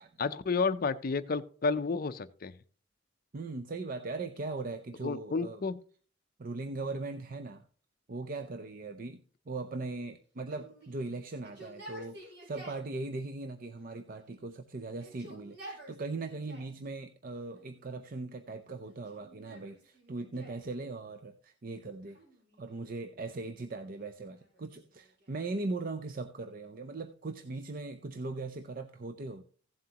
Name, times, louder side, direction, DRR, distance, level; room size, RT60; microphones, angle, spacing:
voice 1, 0.2-2.5 5.0-5.8, left 4 dB, 50° left, 13 dB, 0.5 m, -31 dB
voice 2, 3.3-5.6 6.4-7.6 8.1-22.2 22.6-29.4, right 3 dB, 45° right, 8 dB, 0.5 m, -39 dB
Yell, 10.5-12.9 13.8-14.5 14.9-16.8 17.5-18.2 18.9-20.7 22.1-22.9 23.7-25.5, right 1 dB, 60° right, 4.7 m, -52 dB
15.5 x 7.6 x 2.9 m, 0.43 s
head